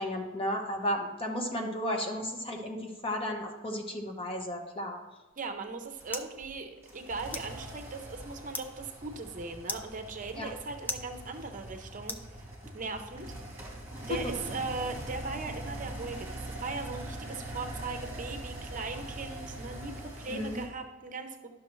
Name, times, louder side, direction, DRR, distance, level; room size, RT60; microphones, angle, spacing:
voice 1, 0.0-5.0 10.4-10.5 14.1-14.3 20.3-20.6, left 1 dB, 25° left, 2 dB, 1.0 m, -33 dB
sound 1, 5.3-12.9, left 2 dB, 10° left, 0.4 m, -44 dB
voice 2, 5.4-12.2 12.7-13.3 13.5-13.7 14.1-21.5, right 3 dB, 40° right, 6 dB, 0.7 m, -39 dB
sound 2, 6.0-20.7, right 1 dB, 10° right, 2.3 m, -42 dB
11.0 x 6.3 x 3.1 m, 1.1 s
head